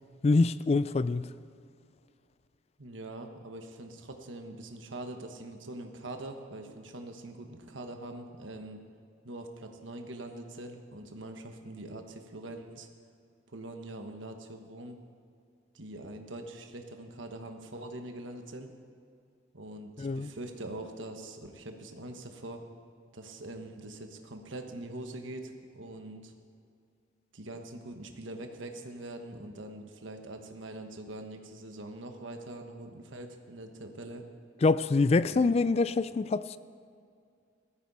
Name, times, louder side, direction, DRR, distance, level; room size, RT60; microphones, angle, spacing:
voice 1, 0.2-1.3 20.0-20.3 34.6-36.6, left 3 dB, 30° left, 0.3 m, -25 dB
voice 2, 2.8-8.8 9.2-12.9 13.5-15.0 15.7-18.7 19.5-22.6 23.1-26.3 27.3-34.2 35.1-35.5, right 1 dB, 80° right, 1.3 m, -43 dB
17.0 x 13.5 x 4.2 m
head